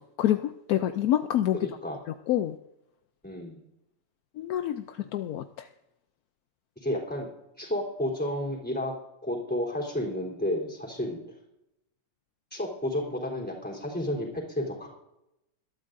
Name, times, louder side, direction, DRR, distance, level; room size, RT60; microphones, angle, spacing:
voice 1, 0.0-1.7 2.1-2.6 4.4-5.7, left 12 dB, 75° left, 9 dB, 0.8 m, -27 dB
voice 2, 1.5-2.0 3.2-3.6 6.8-7.3 7.6-8.9 9.2-11.2 12.5-14.9, left 1 dB, 5° left, -2 dB, 3.5 m, -31 dB
21.5 x 12.5 x 2.6 m, 0.89 s
omnidirectional pair, 2.1 m